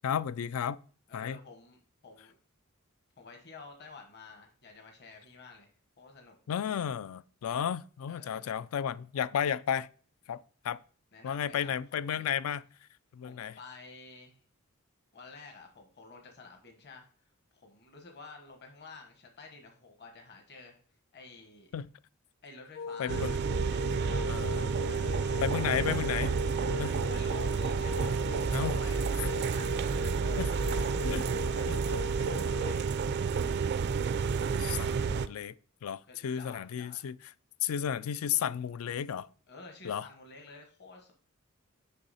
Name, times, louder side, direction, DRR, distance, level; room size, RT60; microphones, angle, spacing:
voice 1, 0.0-0.8 1.1-1.4 6.5-9.9 10.3-10.8 11.2-12.6 13.1-13.5 21.7-21.9 23.0-23.3 24.3-24.7 25.4-26.3 26.8-27.0 28.5-28.8 30.4-30.5 31.0-31.3 31.7-31.8 34.6-35.5 35.8-37.2 37.6-39.3 39.8-40.1, left 8 dB, 75° left, 0.3 m, -33 dB
voice 2, 1.1-2.4 3.2-5.7 6.0-6.3 8.1-8.5 11.1-12.3 13.2-14.4 15.1-17.1 17.5-20.8 21.1-21.7 22.4-23.3 23.6-25.2 27.0-29.7 30.2-30.9 31.4-32.8 36.1-37.0 39.5-41.1, left 4 dB, 50° left, 1.2 m, -51 dB
sound 1, 22.7-32.8, left 5 dB, 35° left, 0.6 m, -41 dB
sound 2, 23.1-35.3, right 5 dB, 50° right, 0.4 m, -30 dB
6.7 x 5.4 x 4.1 m
head